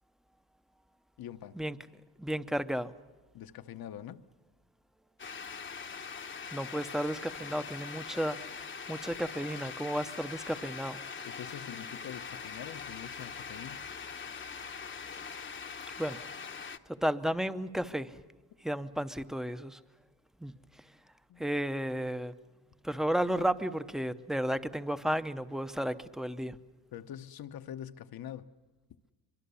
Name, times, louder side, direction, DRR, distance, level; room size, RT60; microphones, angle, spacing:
voice 1, 1.2-1.6 3.3-4.2 11.3-13.8 21.3-21.4 26.9-28.5, left 10 dB, 65° left, 11 dB, 1.0 m, -44 dB
voice 2, 2.2-2.9 6.5-11.0 16.0-16.3 16.9-18.2 18.6-19.8 20.4-20.5 21.4-22.3 22.8-26.6, equal, ahead, 11 dB, 0.7 m, -33 dB
sound 1, 5.2-16.8, left 6 dB, 30° left, 0.9 m, -42 dB
24.0 x 23.5 x 7.0 m, 1.2 s
cardioid pair, 120°, 39 cm